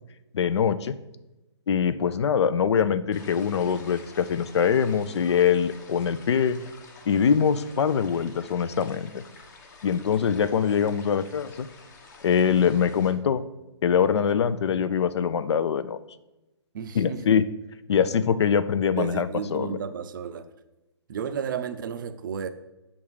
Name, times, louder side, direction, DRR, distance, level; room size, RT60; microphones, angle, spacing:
voice 1, 0.3-0.9 1.7-6.6 7.1-9.2 9.8-11.7 12.2-13.4 13.8-16.0 16.9-17.4 17.9-19.8, left 7 dB, 70° left, 0.5 m, -23 dB
sound 1, 3.1-13.1, left 4 dB, 40° left, 1.0 m, -49 dB
voice 2, 16.7-17.3 19.0-20.5 21.1-22.5, right 7 dB, 45° right, 0.5 m, -32 dB
7.1 x 3.6 x 4.8 m
hypercardioid pair, 155°, 15 cm